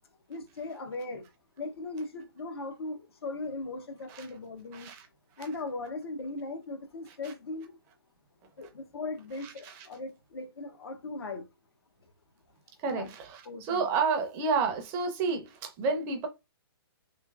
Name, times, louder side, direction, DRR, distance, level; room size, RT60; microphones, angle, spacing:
voice 1, 0.3-1.3 1.6-4.9 5.4-7.8 8.6-11.4 12.9-13.1 13.4-13.9, left 2 dB, 75° left, 0.9 m, -38 dB
voice 2, 4.7-5.1 5.4-5.5 7.2-7.3 9.4-9.9 12.8-16.3, right 5 dB, 20° right, 0.5 m, -30 dB
3.1 x 3.0 x 2.4 m
hypercardioid pair, 155°, 13 cm